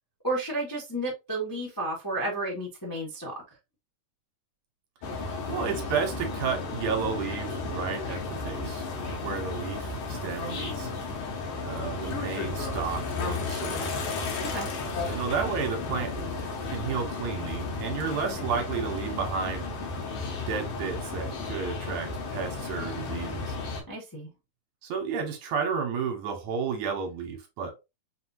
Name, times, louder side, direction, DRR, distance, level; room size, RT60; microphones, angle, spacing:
voice 1, 0.2-3.3 14.4-14.7 23.9-24.3, right 1 dB, 30° left, 0.3 m, -32 dB
sound 1, 5.0-23.8, left 3 dB, 80° left, 2.8 m, -33 dB
voice 2, 5.2-10.9 11.6-14.0 15.1-16.1 16.7-19.7 20.5-23.6 24.8-27.7, right 6 dB, 70° right, 2.2 m, -32 dB
5.8 x 2.7 x 2.8 m
omnidirectional pair, 3.7 m